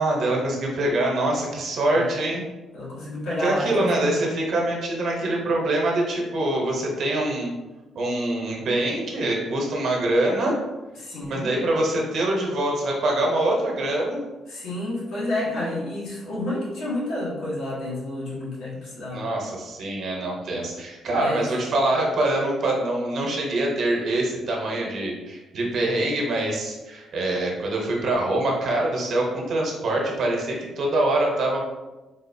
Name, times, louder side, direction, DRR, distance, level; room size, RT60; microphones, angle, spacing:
voice 1, 0.0-2.4 3.4-7.5 7.9-10.6 11.3-14.2 15.5-15.8 19.1-31.6, right 1 dB, 60° right, -1 dB, 0.9 m, -24 dB
voice 2, 2.7-4.2 11.0-11.5 14.5-19.3 21.1-21.5, left 1 dB, 90° left, -6 dB, 1.2 m, -30 dB
3.9 x 2.4 x 2.7 m, 1.1 s
cardioid pair, 140°, 0 cm